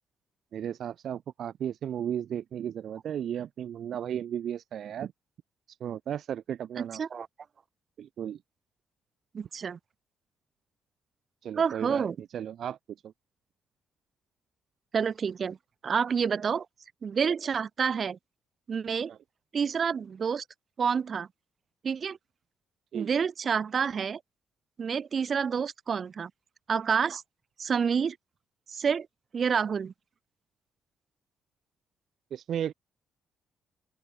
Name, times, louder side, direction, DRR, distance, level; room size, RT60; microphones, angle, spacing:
voice 1, 0.5-5.1 5.8-7.0 8.0-8.4 11.4-12.8 13.0-13.1 19.1-19.2 22.9-23.1 32.3-32.7, right 9 dB, 65° right, 3.8 m, -34 dB
voice 2, 6.8-7.3 9.3-9.8 11.5-12.2 14.9-15.6 15.8-16.7 17.0-18.2 18.7-19.1 19.5-20.4 20.8-21.3 21.8-22.2 22.9-24.2 24.8-26.3 26.7-27.2 27.6-28.2 28.7-29.1 29.3-29.9, right 6 dB, 45° right, 2.2 m, -28 dB
open air
cardioid pair, 90°, 0 cm